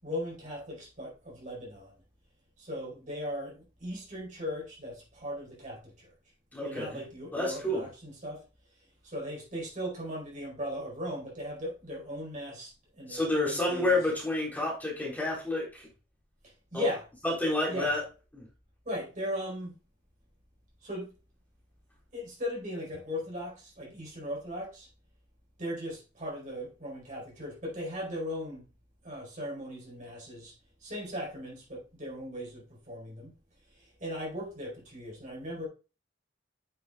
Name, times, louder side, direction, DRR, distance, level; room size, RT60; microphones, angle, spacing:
voice 1, 0.0-1.9 2.6-6.1 6.6-8.4 9.0-14.0 16.4-17.0 17.7-17.9 18.8-19.7 20.8-21.1 22.1-24.9 25.6-28.7 29.0-30.5 30.8-33.3 33.7-35.7, equal, 45° right, 4.7 m, -38 dB
voice 2, 6.5-7.0 7.3-7.8 13.1-15.9 16.7-16.9 17.4-18.0 18.3-18.5, left 2 dB, 10° left, 3.7 m, -29 dB
9.0 x 7.3 x 2.4 m
head